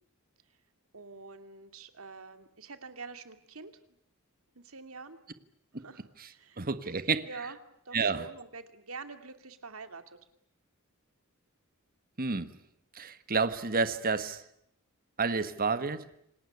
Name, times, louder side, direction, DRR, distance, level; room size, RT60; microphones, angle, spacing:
voice 1, 0.9-3.7 4.6-5.2 5.8-6.6 7.2-7.6 7.8-10.0, right 4 dB, 70° right, 9 dB, 2.5 m, -46 dB
voice 2, 6.6-7.3 7.9-8.3 12.2-12.5 12.9-14.4 15.2-16.1, right 4 dB, 45° right, 11 dB, 1.5 m, -30 dB
28.0 x 19.0 x 9.7 m, 0.73 s
head